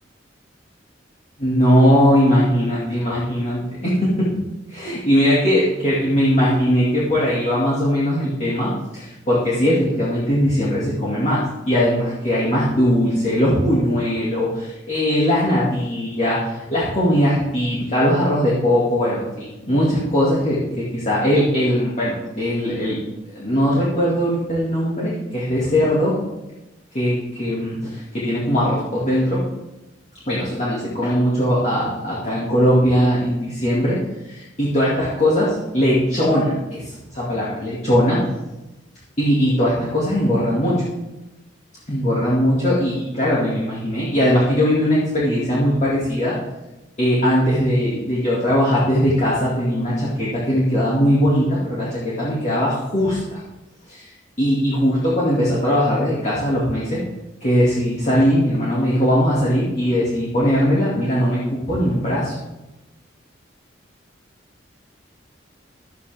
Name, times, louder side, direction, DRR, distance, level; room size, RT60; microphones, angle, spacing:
voice 1, 1.4-4.3 4.7-23.0 23.3-26.2 26.9-29.4 30.3-34.0 34.3-35.5 35.7-38.2 39.2-40.8 41.9-46.4 47.0-53.4 53.9-54.1 54.4-57.0 57.4-62.3, equal, 40° left, -8 dB, 2.3 m, -20 dB
12.5 x 9.3 x 3.5 m, 0.99 s
head